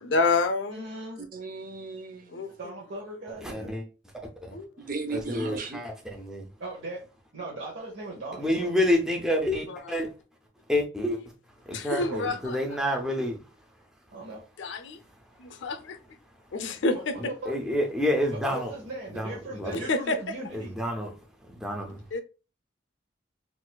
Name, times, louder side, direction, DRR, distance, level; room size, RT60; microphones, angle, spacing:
voice 1, 0.0-0.9 2.3-2.8 4.5-4.7 11.7-12.6 14.6-15.0 15.4-16.0 16.5-17.2 19.7-20.2 22.1-22.2, left 3 dB, 80° left, 0.5 m, -28 dB
voice 2, 0.7-1.2 2.6-3.9 6.6-7.0 7.3-8.7 12.0-12.4 14.1-14.4 16.9-17.0 17.4-17.6 18.3-20.7, right 2 dB, 85° right, 0.8 m, -38 dB
voice 3, 1.3-2.4 4.8-5.8, right 4 dB, 45° right, 0.6 m, -36 dB
voice 4, 3.4-3.8 4.1-4.6 5.1-6.5 8.4-10.1 10.7-11.2 11.6-13.5 17.2-18.7 19.1-19.7 20.5-21.1 21.4-22.0, left 1 dB, 5° right, 0.4 m, -29 dB
3.9 x 2.4 x 2.2 m
head